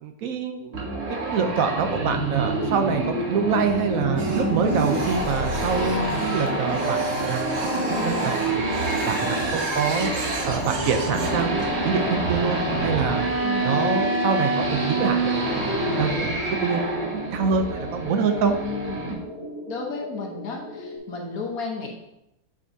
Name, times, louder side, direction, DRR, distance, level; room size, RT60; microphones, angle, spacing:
voice 1, 0.0-0.8 1.3-8.7 9.0-10.1 10.4-13.2 13.6-18.5, right 6 dB, 65° right, 6 dB, 1.0 m, -26 dB
sound 1, 0.7-19.1, right 2 dB, 40° right, 1.5 m, -27 dB
Printer, 4.2-12.0, equal, 85° right, 1.6 m, -32 dB
sound 2, 5.6-21.0, left 1 dB, 25° left, 1.6 m, -35 dB
voice 2, 13.4-13.8 18.7-19.1 19.7-21.9, left 4 dB, 65° left, 0 dB, 1.4 m, -33 dB
8.5 x 5.2 x 2.7 m, 0.88 s
omnidirectional pair, 1.7 m